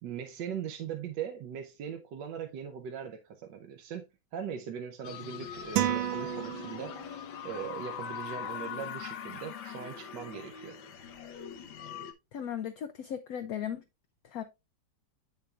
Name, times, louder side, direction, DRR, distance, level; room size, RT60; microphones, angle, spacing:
voice 1, 0.0-4.0 4.3-10.8, right 8 dB, 70° right, 1.4 m, -40 dB
sound 1, 5.0-12.1, left 8 dB, 85° left, 1.7 m, -42 dB
sound 2, 5.8-7.3, right 12 dB, 90° right, 1.4 m, -31 dB
voice 2, 12.3-13.8 14.2-14.4, left 9 dB, 65° left, 0.9 m, -36 dB
8.2 x 6.8 x 2.4 m
omnidirectional pair, 2.1 m